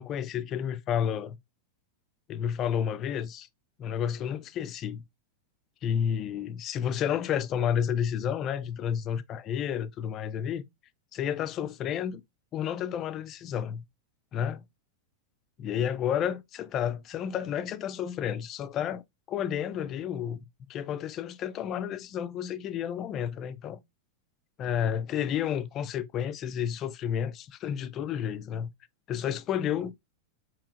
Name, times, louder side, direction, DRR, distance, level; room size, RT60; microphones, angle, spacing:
voice 1, 0.0-1.4 2.3-3.5 3.8-5.0 5.8-10.6 11.1-12.2 12.5-13.8 14.3-14.6 15.6-19.0 19.3-23.8 24.6-28.7 29.1-29.9, left 9 dB, 35° left, 0.4 m, -31 dB
4.8 x 2.9 x 2.4 m
hypercardioid pair, 105°, 0 cm